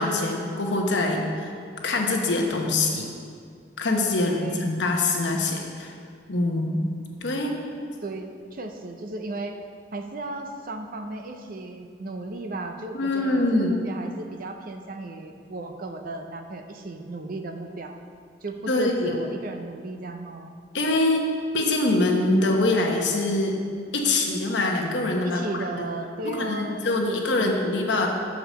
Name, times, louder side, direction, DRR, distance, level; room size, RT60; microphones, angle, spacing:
voice 1, 0.0-1.5 1.8-3.1 3.8-5.9 6.3-6.8 7.2-7.6 12.9-13.8 18.7-19.2 20.7-21.3 21.5-23.6 23.9-25.4 26.2-28.1, left 2 dB, 80° left, 1 dB, 1.0 m, -24 dB
voice 2, 4.2-4.7 8.0-9.6 9.9-17.9 18.4-20.6 25.2-27.6, right 2 dB, 50° right, 5 dB, 0.6 m, -35 dB
6.5 x 4.8 x 6.6 m, 2.2 s
head